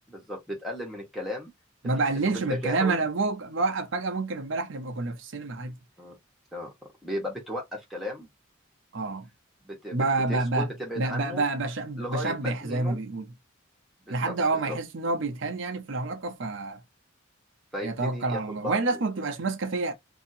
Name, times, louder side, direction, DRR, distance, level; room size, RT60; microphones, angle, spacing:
voice 1, 0.1-1.5 2.3-3.0 6.0-6.2 6.5-6.7 7.0-8.3 9.6-11.4 12.0-13.0 14.1-14.3 14.7-14.8 17.7-18.8, equal, ahead, 1.1 m, -35 dB
voice 2, 1.8-5.8 8.9-9.3 9.9-10.7 11.0-13.3 14.1-16.8 17.8-19.9, right 3 dB, 70° right, 0.7 m, -28 dB
2.8 x 2.7 x 2.7 m
head